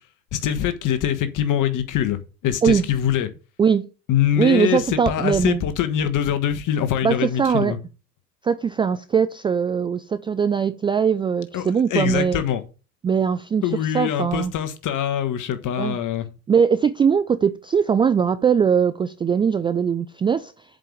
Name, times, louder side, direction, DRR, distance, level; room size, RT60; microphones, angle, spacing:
voice 1, 0.3-3.3 4.1-7.8 11.5-12.6 13.6-16.3, left 10 dB, 40° left, 1.5 m, -23 dB
voice 2, 4.4-5.6 7.0-7.7 8.4-12.4 13.0-14.5 15.8-16.0 16.5-20.5, right 6 dB, 10° right, 0.3 m, -21 dB
7.5 x 5.2 x 7.1 m
hypercardioid pair, 75°, 46 cm